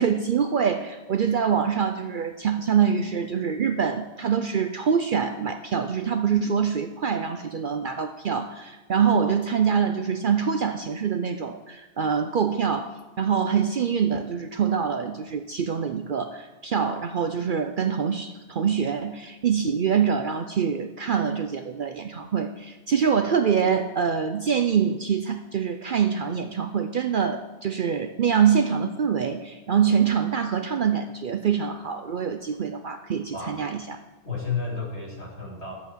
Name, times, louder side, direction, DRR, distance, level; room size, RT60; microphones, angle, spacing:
voice 1, 0.0-34.0, right 7 dB, 55° right, 7 dB, 0.7 m, -25 dB
voice 2, 34.2-35.7, left 5 dB, 90° left, -2 dB, 3.4 m, -31 dB
12.5 x 8.1 x 7.3 m, 1.2 s
omnidirectional pair, 1.1 m